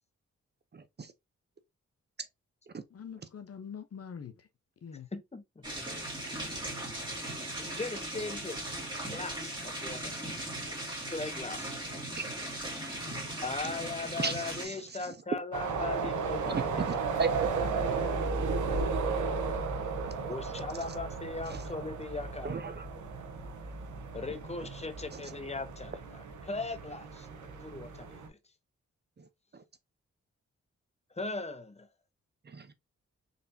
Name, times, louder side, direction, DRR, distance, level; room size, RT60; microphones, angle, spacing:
voice 1, 0.7-1.1 2.7-2.8 6.3-6.4 12.2-12.3 12.9-13.3 14.2-15.1 16.4-17.6 20.0-20.1 21.5-21.6 22.4-22.8 25.1-25.3 29.2-29.6 32.4-32.7, right 5 dB, 35° right, 0.6 m, -36 dB
voice 2, 2.9-4.5 4.8-5.1 12.7-13.2, left 7 dB, 55° left, 0.8 m, -45 dB
voice 3, 5.1-6.1 7.6-8.6 9.1-10.2 11.1-11.8 13.4-17.1 20.3-22.6 24.1-28.4 31.1-31.9, left 3 dB, 20° left, 0.8 m, -39 dB
sound 1, 5.6-14.7, right 1 dB, 15° right, 2.1 m, -38 dB
sound 2, 15.5-28.3, right 4 dB, 85° right, 0.9 m, -34 dB
4.1 x 3.3 x 2.6 m
cardioid pair, 60°, 29 cm